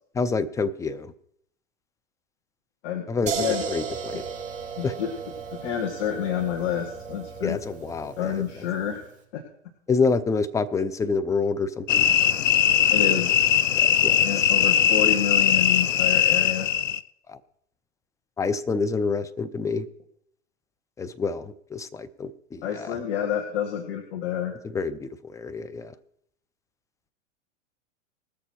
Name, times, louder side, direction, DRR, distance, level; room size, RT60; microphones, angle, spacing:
voice 1, 0.2-1.1 3.1-4.2 4.8-4.9 7.4-8.4 9.9-12.1 13.8-14.5 17.3-17.4 18.4-19.9 21.0-23.0 24.7-25.9, left 4 dB, 10° left, 13 dB, 0.6 m, -27 dB
sound 1, 3.3-9.1, right 5 dB, 20° right, 3.5 m, -35 dB
voice 2, 4.8-5.1 5.5-7.6 8.2-9.1 9.3-9.4 12.9-13.4 14.2-16.7 22.6-24.5, left 9 dB, 55° left, 2 dB, 2.1 m, -29 dB
sound 2, 11.9-17.0, left 9 dB, 85° left, 0.7 m, -20 dB
19.5 x 6.7 x 4.5 m, 0.71 s
hypercardioid pair, 115°, 37 cm